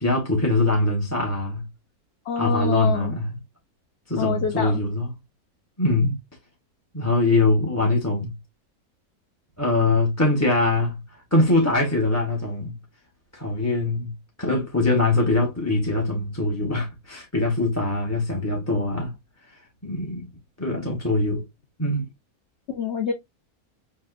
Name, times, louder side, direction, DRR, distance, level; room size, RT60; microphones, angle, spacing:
voice 1, 0.0-1.7 2.4-3.3 4.1-5.1 5.8-6.1 6.9-8.3 9.6-12.7 13.3-19.1 19.8-20.3 20.6-21.4 21.8-22.1, left 2 dB, 10° left, 1.0 m, -23 dB
voice 2, 2.2-3.1 4.2-4.8 22.7-23.1, left 7 dB, 50° left, 1.0 m, -26 dB
6.7 x 2.7 x 2.4 m
omnidirectional pair, 1.6 m